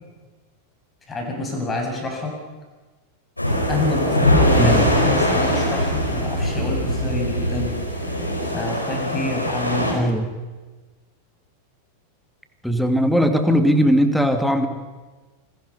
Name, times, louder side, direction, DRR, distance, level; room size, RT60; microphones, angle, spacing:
voice 1, 1.1-2.3 3.7-10.1, left 2 dB, 20° left, 2 dB, 6.9 m, -28 dB
sound 1, 3.4-9.9, equal, 85° left, 5.6 m, -21 dB
voice 2, 9.9-10.3 12.6-14.7, equal, ahead, 7 dB, 2.5 m, -19 dB
28.5 x 21.5 x 5.7 m, 1.3 s
figure-of-eight pair, 90°, 0 cm